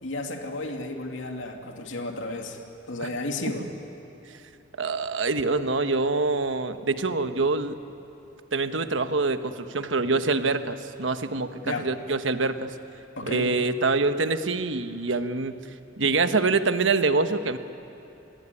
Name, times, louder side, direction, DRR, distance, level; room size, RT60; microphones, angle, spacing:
voice 1, 0.0-2.6 2.9-3.7 11.6-11.9 13.2-13.5, left 2 dB, 80° left, 3 dB, 2.7 m, -33 dB
voice 2, 4.8-7.8 8.5-12.7 13.2-15.6 16.0-17.6, right 3 dB, 80° right, 9 dB, 1.2 m, -25 dB
27.0 x 21.5 x 9.8 m, 3.0 s
head